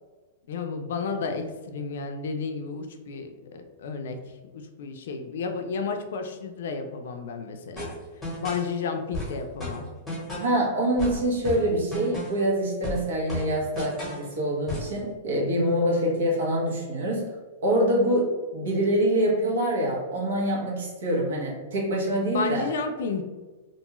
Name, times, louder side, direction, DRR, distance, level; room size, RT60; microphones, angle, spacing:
voice 1, 0.5-4.2 4.5-7.9 8.4-9.8 22.3-23.2, left 4 dB, 70° left, 5 dB, 0.4 m, -32 dB
sound 1, 7.8-8.7 9.1-10.6 11.0-12.5 12.8-14.3 14.7-15.0, left 1 dB, ahead, 1.1 m, -34 dB
voice 2, 10.4-17.3 17.6-22.7, right 1 dB, 75° right, -3 dB, 1.0 m, -25 dB
2.5 x 2.3 x 2.9 m, 1.3 s
supercardioid pair, 165°, 0 cm